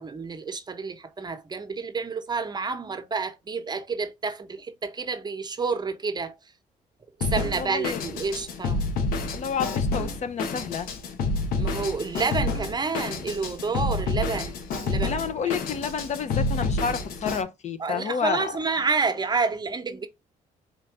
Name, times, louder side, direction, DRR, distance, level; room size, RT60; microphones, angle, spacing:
voice 1, 0.0-6.3 7.2-8.8 11.6-14.6 14.8-15.2 17.8-20.1, right 4 dB, 30° right, 0.9 m, -29 dB
Drum kit, 7.2-17.4, left 3 dB, 80° left, 1.0 m, -29 dB
voice 2, 7.5-8.0 9.3-10.9 15.1-18.5, left 6 dB, 50° left, 0.7 m, -30 dB
4.5 x 2.6 x 3.3 m
cardioid pair, 85°, 15 cm